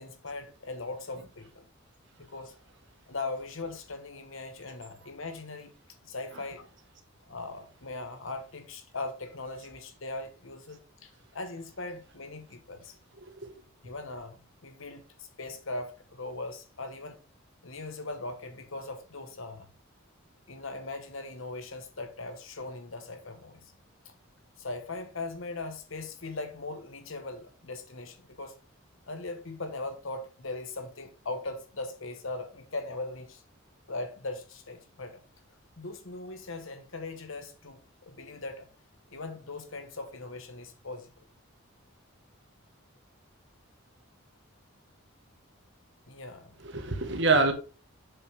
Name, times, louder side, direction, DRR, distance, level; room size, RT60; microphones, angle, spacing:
voice 1, 0.0-1.6 2.2-2.6 3.1-5.7 6.0-6.7 7.3-12.9 13.8-17.2 17.6-19.7 20.5-23.6 24.0-24.1 24.6-28.6 29.1-33.4 33.9-35.2 35.8-38.7 39.1-41.1 46.1-46.6, left 2 dB, 65° left, 1.2 m, -39 dB
voice 2, 13.2-13.5 46.6-47.5, right 3 dB, 55° right, 1.5 m, -26 dB
7.3 x 5.9 x 3.4 m
head